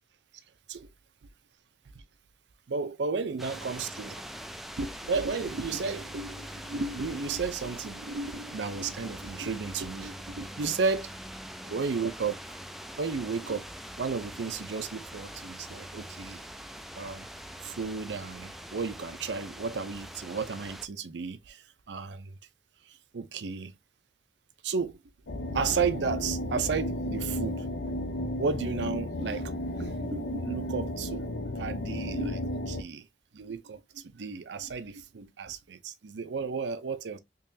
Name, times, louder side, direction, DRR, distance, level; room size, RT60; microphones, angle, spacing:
voice 1, 2.7-4.2 4.8-11.1 11.6-12.5 12.9-13.7 14.0-16.4 17.0-17.3 17.6-22.3 22.8-23.7 24.6-25.0 25.5-28.0 28.4-33.1 33.3-37.2, right 5 dB, 75° right, 0.5 m, -33 dB
sound 1, 3.4-20.9, equal, ahead, 0.3 m, -43 dB
sound 2, 25.3-32.8, left 1 dB, 85° left, 0.7 m, -33 dB
3.8 x 3.0 x 2.6 m
head